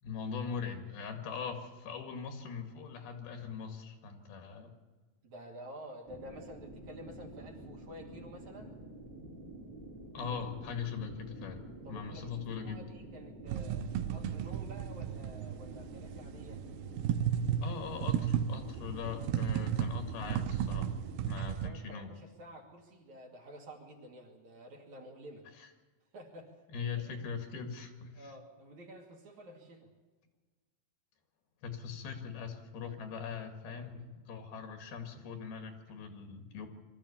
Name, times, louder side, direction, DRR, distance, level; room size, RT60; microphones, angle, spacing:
voice 1, 0.0-4.7 10.1-12.8 17.6-20.9 21.3-22.1 25.6-25.7 26.7-28.2 31.6-36.7, left 6 dB, 80° left, 6 dB, 4.0 m, -41 dB
voice 2, 5.2-8.8 11.8-16.6 21.4-25.5 26.1-26.6 28.1-29.9 33.6-34.1, equal, 55° right, 1 dB, 3.6 m, -50 dB
sound 1, 6.1-21.4, right 1 dB, 15° right, 2.1 m, -49 dB
sound 2, 13.5-21.7, right 9 dB, 85° right, 2.7 m, -34 dB
23.0 x 13.5 x 8.5 m, 1.3 s
omnidirectional pair, 4.4 m